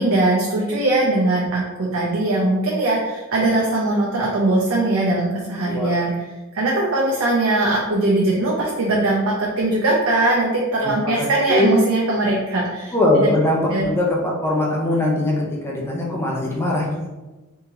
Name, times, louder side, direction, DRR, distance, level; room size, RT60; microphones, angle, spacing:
voice 1, 0.0-6.1 6.5-13.3 13.7-13.9, right 2 dB, 65° right, -4 dB, 0.6 m, -20 dB
voice 2, 11.2-11.7 12.9-13.6 13.8-14.1 14.4-17.1, left 1 dB, 10° left, -4 dB, 0.6 m, -21 dB
3.5 x 2.8 x 2.9 m, 1.1 s
head